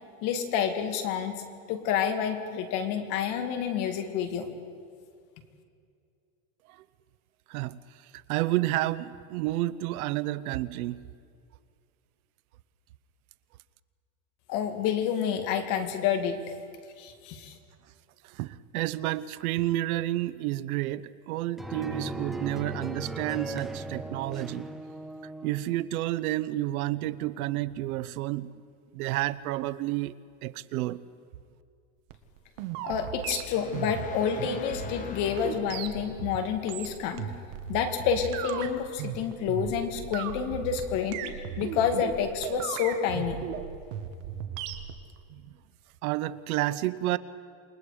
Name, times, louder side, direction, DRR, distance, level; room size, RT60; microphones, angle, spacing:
voice 1, 0.2-1.4 1.7-4.5 14.5-16.4 17.0-17.6 32.8-37.3 37.7-41.2 41.6-43.4, left 8 dB, 45° left, 6 dB, 2.2 m, -29 dB
voice 2, 7.5-11.1 18.2-24.7 25.4-28.5 28.9-30.2 30.4-31.0 45.3-45.5 46.0-47.2, right 16 dB, 85° right, 15 dB, 0.9 m, -30 dB
sound 1, 21.6-25.7, right 1 dB, ahead, 0.6 m, -37 dB
sound 2, 32.1-44.9, right 10 dB, 60° right, 1.7 m, -36 dB
sound 3, 33.5-36.3, left 5 dB, 20° left, 1.1 m, -42 dB
28.0 x 21.5 x 5.0 m, 2.3 s
supercardioid pair, 175°, 43 cm